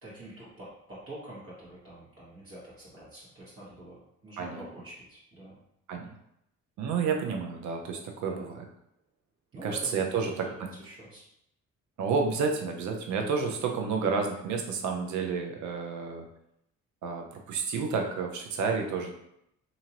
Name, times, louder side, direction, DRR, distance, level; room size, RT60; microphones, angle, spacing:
voice 1, 0.0-5.6 8.2-8.6 9.5-11.2, right 1 dB, 45° right, -8 dB, 1.4 m, -46 dB
voice 2, 6.8-8.6 9.6-10.4 12.0-16.3 17.0-19.1, right 5 dB, 70° right, 2 dB, 0.6 m, -30 dB
2.7 x 2.6 x 2.9 m, 0.78 s
cardioid pair, 90°, 30 cm